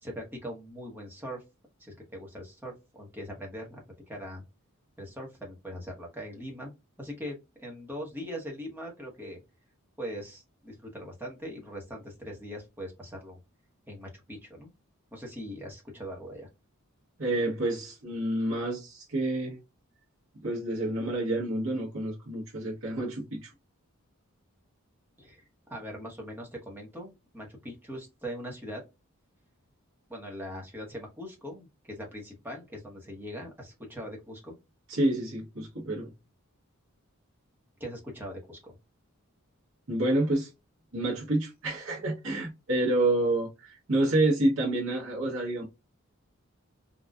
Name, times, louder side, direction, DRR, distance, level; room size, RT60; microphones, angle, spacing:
voice 1, 0.0-1.4 1.8-4.4 5.0-6.7 7.0-9.4 10.0-13.4 13.9-14.7 15.1-16.5 25.2-25.4 25.7-28.8 30.1-34.6 37.8-38.7, equal, 10° right, 1.0 m, -41 dB
voice 2, 17.2-19.6 20.4-23.5 34.9-36.1 39.9-40.5 40.9-45.6, right 1 dB, 65° right, 1.0 m, -28 dB
3.9 x 2.3 x 2.3 m
head